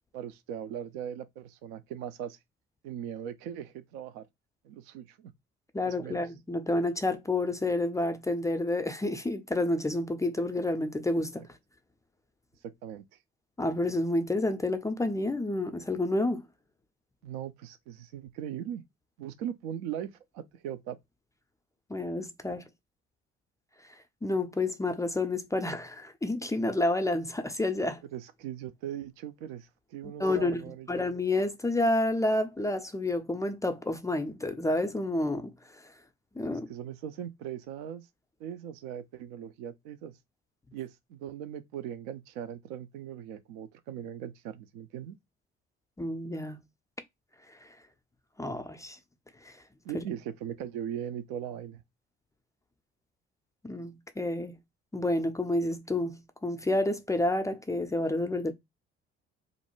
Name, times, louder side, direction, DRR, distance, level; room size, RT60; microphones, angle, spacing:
voice 1, 0.1-2.4 2.8-4.3 4.6-5.3 5.8-6.2 12.6-13.1 17.2-18.8 19.2-21.0 28.1-30.9 36.5-38.1 38.4-40.2 40.7-45.2 49.8-51.8, right 10 dB, 70° right, 0.5 m, -39 dB
voice 2, 5.7-11.4 13.6-16.4 21.9-22.7 24.2-28.0 30.2-35.5 36.4-36.7 46.0-46.6 47.6-47.7 48.4-49.0 49.4-49.5 49.9-50.0 53.6-54.6 54.9-58.5, left 2 dB, 10° left, 0.4 m, -29 dB
2.5 x 2.1 x 3.0 m
hypercardioid pair, 50°, 32 cm